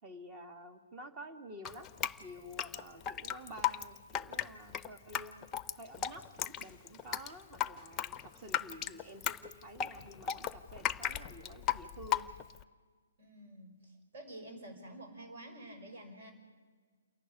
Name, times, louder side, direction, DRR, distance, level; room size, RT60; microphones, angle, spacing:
voice 1, 0.0-1.9 2.2-5.5 5.7-12.3, equal, 25° right, 8 dB, 2.1 m, -50 dB
Drip, 1.7-12.6, left 10 dB, 20° left, 0.7 m, -36 dB
voice 2, 13.2-16.3, right 1 dB, 55° right, 4 dB, 5.9 m, -49 dB
28.5 x 11.5 x 10.0 m, 1.5 s
figure-of-eight pair, 130°, 0 cm